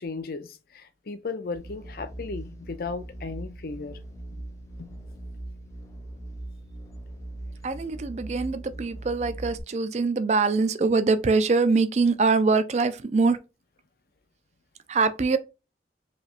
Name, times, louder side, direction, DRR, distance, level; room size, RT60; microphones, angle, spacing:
voice 1, 0.0-4.0 4.3-4.4 4.8-4.9, left 4 dB, 55° left, 0.5 m, -35 dB
sound 1, 1.5-9.6, right 1 dB, 15° left, 0.7 m, -40 dB
voice 2, 7.6-13.4 14.9-15.4, right 4 dB, 40° right, 0.4 m, -23 dB
4.9 x 3.2 x 2.5 m
head